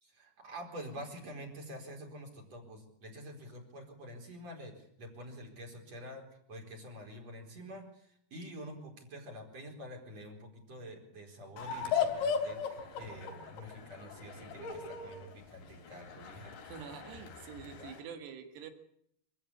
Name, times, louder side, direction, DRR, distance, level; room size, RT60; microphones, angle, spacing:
voice 1, 0.0-16.5, equal, 40° right, 1 dB, 5.1 m, -47 dB
sound 1, 11.6-18.0, left 6 dB, 85° left, 5.4 m, -37 dB
voice 2, 16.7-18.7, right 7 dB, 75° right, 6 dB, 4.1 m, -46 dB
25.0 x 14.5 x 8.6 m, 0.70 s
omnidirectional pair, 5.0 m